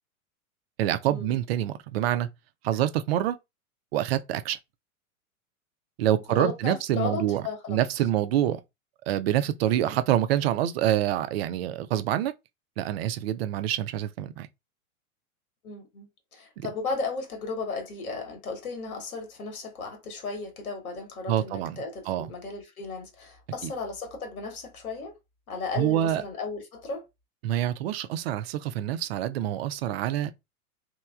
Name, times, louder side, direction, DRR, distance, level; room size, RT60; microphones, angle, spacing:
voice 1, 0.8-2.3 2.6-3.4 3.9-4.6 6.0-7.4 7.7-8.6 9.1-12.3 12.8-14.5 16.6-16.7 21.3-21.8 22.1-22.3 23.6-23.7 25.8-26.2 27.4-30.3, right 12 dB, 45° right, 0.4 m, -26 dB
voice 2, 6.0-7.8 9.7-10.0 15.6-25.2 25.5-27.0, left 4 dB, 70° left, 1.2 m, -35 dB
3.0 x 2.3 x 2.3 m
hypercardioid pair, 105°, 44 cm